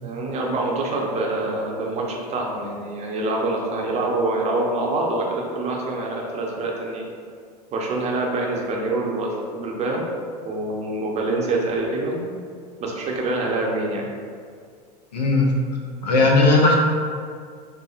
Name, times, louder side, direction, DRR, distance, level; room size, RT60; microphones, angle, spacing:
voice 1, 0.0-7.0 7.7-10.0 10.4-12.2 12.8-14.1, right 2 dB, 30° right, -1 dB, 0.6 m, -25 dB
voice 2, 15.1-15.5 16.0-16.8, left 3 dB, 85° left, -1 dB, 0.5 m, -16 dB
4.3 x 2.0 x 2.4 m, 2.1 s
figure-of-eight pair, 80°, 21 cm